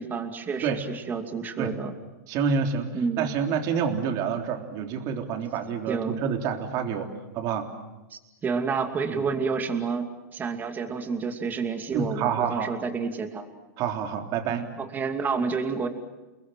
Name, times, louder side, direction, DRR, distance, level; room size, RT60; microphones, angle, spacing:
voice 1, 0.0-1.9 2.9-3.3 5.9-6.2 8.1-13.5 14.5-15.9, right 5 dB, 20° right, 5 dB, 2.6 m, -29 dB
voice 2, 2.3-2.9 3.2-7.1 7.3-7.7 9.1-9.3 11.9-12.7 13.8-14.7, right 6 dB, 40° right, 3 dB, 3.5 m, -28 dB
29.5 x 20.5 x 7.6 m, 1.1 s
hypercardioid pair, 130°, 9 cm